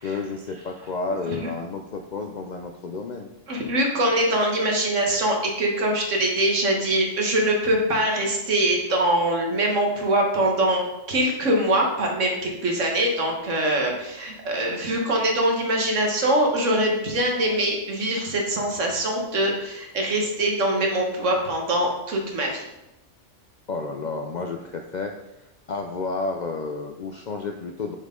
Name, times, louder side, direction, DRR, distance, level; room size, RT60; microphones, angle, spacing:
voice 1, 0.0-3.3 23.7-25.2 25.7-28.0, left 3 dB, 65° left, 4 dB, 0.4 m, -31 dB
voice 2, 3.5-22.7, right 1 dB, 80° right, 1 dB, 1.6 m, -23 dB
6.4 x 5.5 x 3.7 m, 0.92 s
omnidirectional pair, 1.3 m